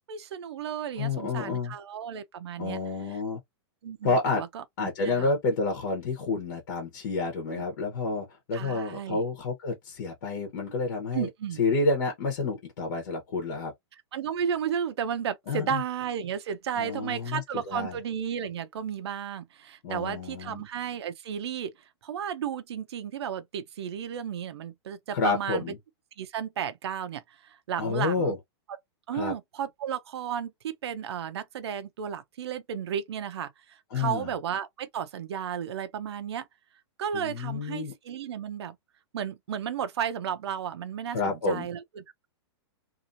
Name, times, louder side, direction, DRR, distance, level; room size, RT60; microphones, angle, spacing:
voice 1, 0.1-2.8 3.8-4.6 5.0-5.4 7.5-7.6 8.5-9.2 11.1-11.6 14.1-21.7 22.0-25.6 26.2-28.4 29.1-36.5 37.0-38.8 39.1-42.3, right 8 dB, 70° right, 0.7 m, -33 dB
voice 2, 1.0-1.7 2.6-3.4 4.0-4.4 4.8-11.3 11.6-13.7 15.5-15.8 16.8-18.0 19.8-20.6 25.1-25.8 27.8-28.4 29.1-29.3 33.9-34.3 37.1-37.9 41.1-41.7, left 3 dB, 45° left, 1.1 m, -29 dB
2.8 x 2.7 x 2.6 m
supercardioid pair, 170°, 14 cm